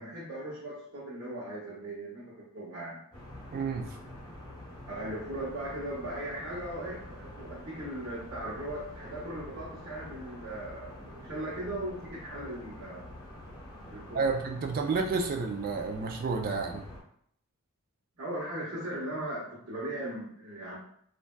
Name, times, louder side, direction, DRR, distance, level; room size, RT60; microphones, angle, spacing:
voice 1, 0.0-3.0 4.9-13.0 13.9-14.3 18.2-20.8, right 1 dB, 65° right, -10 dB, 1.1 m, -38 dB
sound 1, 3.1-17.0, left 1 dB, 20° left, 1.0 m, -46 dB
voice 2, 3.5-4.0 14.1-16.8, right 4 dB, 40° right, 3 dB, 0.3 m, -30 dB
3.4 x 2.5 x 2.2 m, 0.65 s
head